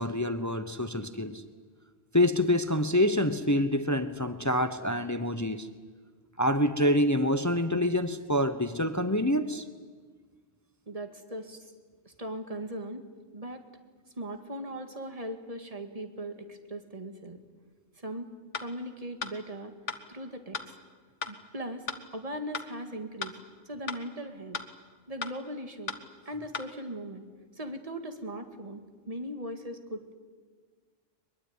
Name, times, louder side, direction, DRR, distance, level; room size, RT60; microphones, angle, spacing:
voice 1, 0.0-1.4 2.1-5.7 6.4-9.6, left 1 dB, 15° left, 11 dB, 0.9 m, -26 dB
voice 2, 10.9-11.7 12.1-13.0 13.3-13.6 14.2-17.4 18.0-18.3 18.6-19.7 20.1-20.7 21.3-21.8 22.1-23.4 23.7-24.6 25.1-26.0 26.3-27.2 27.6-30.0, right 1 dB, 30° right, 7 dB, 2.1 m, -39 dB
sound 1, 18.5-18.7 19.2-19.3 19.9-20.0 20.5-20.7 21.2-21.3 21.9-22.0 22.5-22.7 23.2-23.3 23.9-24.0 24.5-24.7 25.2-25.3 25.9-26.0 26.5-26.7, left 5 dB, 65° left, 1.7 m, -35 dB
22.0 x 22.0 x 9.6 m, 1.5 s
omnidirectional pair, 1.3 m